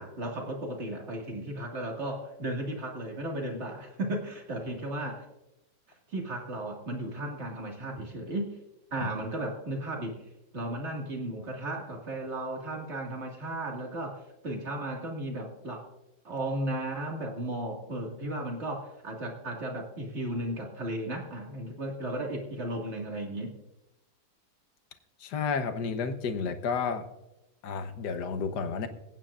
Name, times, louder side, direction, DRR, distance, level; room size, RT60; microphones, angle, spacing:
voice 1, 0.0-5.3 6.1-8.5 8.9-10.2 10.5-15.8 16.2-23.5, right 1 dB, 35° right, 1 dB, 2.3 m, -35 dB
voice 2, 25.2-27.1 27.6-28.9, left 5 dB, 65° left, 8 dB, 1.5 m, -31 dB
27.0 x 9.1 x 2.5 m, 0.93 s
omnidirectional pair, 2.0 m